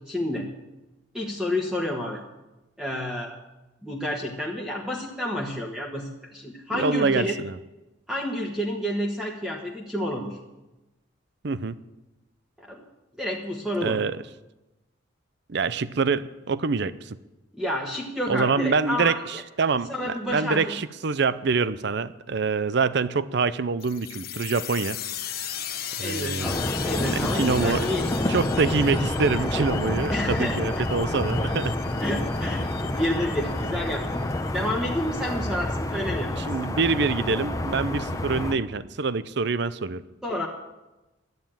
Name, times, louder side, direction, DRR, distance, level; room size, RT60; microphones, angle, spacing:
voice 1, 0.1-0.5 1.1-2.2 2.8-3.4 3.8-7.4 8.1-10.4 12.6-12.8 13.2-14.0 17.5-19.2 19.9-20.8 26.0-28.0 30.1-30.6 32.0-34.2 34.5-36.4 40.2-40.5, left 1 dB, 5° right, -2 dB, 1.3 m, -29 dB
voice 2, 6.7-7.5 11.4-11.8 13.8-14.2 15.5-17.2 18.3-25.0 26.0-26.5 27.1-27.9 28.3-31.8 36.4-40.0, right 4 dB, 60° right, 16 dB, 0.6 m, -25 dB
sound 1, 23.8-35.2, left 9 dB, 50° left, 1.2 m, -37 dB
sound 2, 26.4-38.6, left 1 dB, 15° left, 0.8 m, -28 dB
12.0 x 9.3 x 8.9 m, 1.0 s
head